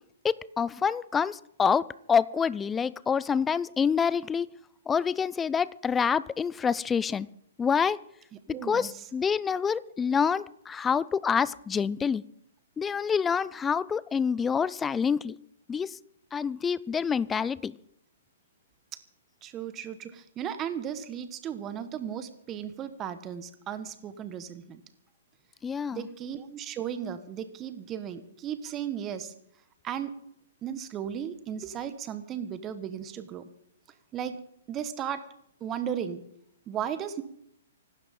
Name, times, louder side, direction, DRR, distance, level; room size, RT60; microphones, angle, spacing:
voice 1, 0.2-4.5 4.9-7.3 7.6-8.0 8.6-12.2 12.8-15.4 15.7-16.0 16.3-17.7 25.6-26.1, left 6 dB, 15° left, 20 dB, 0.5 m, -27 dB
voice 2, 8.5-9.0 19.4-24.8 25.9-29.3 29.8-30.1 30.6-33.5 34.1-34.4 34.7-35.2 35.6-36.2 36.7-37.2, right 9 dB, 25° right, 11 dB, 1.5 m, -35 dB
25.5 x 12.5 x 3.8 m, 0.72 s
hypercardioid pair, 125°, 0 cm